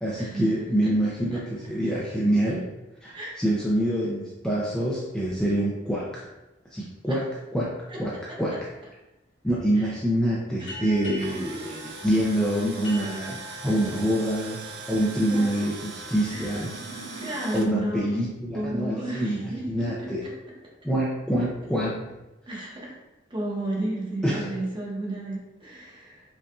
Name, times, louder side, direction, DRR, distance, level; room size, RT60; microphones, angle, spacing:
voice 1, 0.0-2.6 3.0-6.2 6.7-7.2 7.5-7.7 8.0-8.1 8.4-8.7 9.4-14.6 14.9-16.7 17.5-20.3 20.8-22.0 24.2-24.5, right 1 dB, 5° left, -6 dB, 0.5 m, -26 dB
voice 2, 10.6-11.1 13.6-13.7 15.3-15.4 16.3-16.6 17.2-18.2 18.5-19.6 20.0-20.3 22.5-23.0 23.3-26.2, right 1 dB, 25° right, -4 dB, 1.0 m, -32 dB
sound 1, 10.7-15.8, equal, 80° left, 1.5 m, -44 dB
Tools, 11.0-17.7, right 3 dB, 60° right, 0.5 m, -40 dB
sound 2, 16.6-19.6, right 2 dB, 80° right, 1.3 m, -46 dB
5.2 x 2.5 x 2.4 m, 0.99 s
head